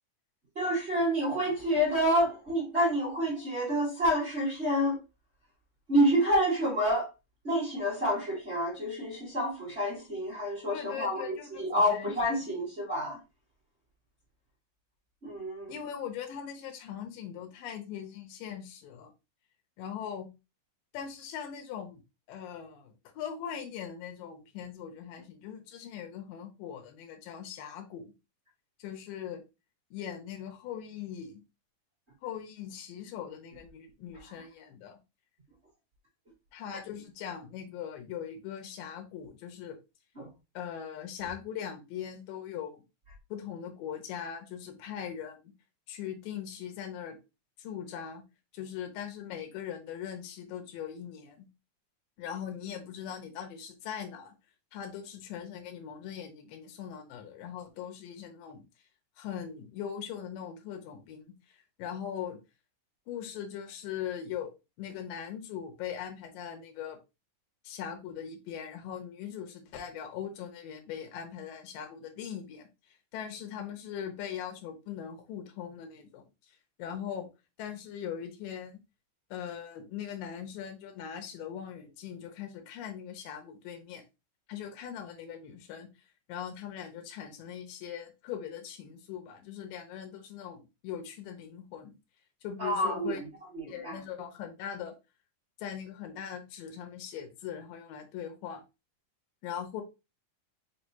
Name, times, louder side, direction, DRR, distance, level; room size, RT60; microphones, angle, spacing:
voice 1, 0.5-5.0 5.9-7.1 7.4-13.2 15.2-15.7 36.7-36.8 40.1-40.3 92.6-93.3 93.5-94.0, equal, 30° right, 1.2 m, -28 dB
voice 2, 10.7-12.1 15.7-19.1 19.8-20.3 20.9-22.0 22.3-28.1 28.8-29.4 29.9-31.4 32.2-35.0 36.5-39.8 40.5-42.8 43.3-45.5 45.9-47.2 47.6-48.2 48.5-51.5 52.2-54.3 54.7-58.6 59.2-62.4 63.1-64.5 64.8-67.0 67.6-72.7 73.1-76.2 76.8-77.3 77.6-78.8 79.3-84.0 84.5-85.9 86.3-92.0 92.4-93.2 93.7-94.9 95.6-98.6 99.4-99.8, left 9 dB, 80° left, 2.5 m, -40 dB
5.4 x 3.3 x 2.7 m
omnidirectional pair, 4.1 m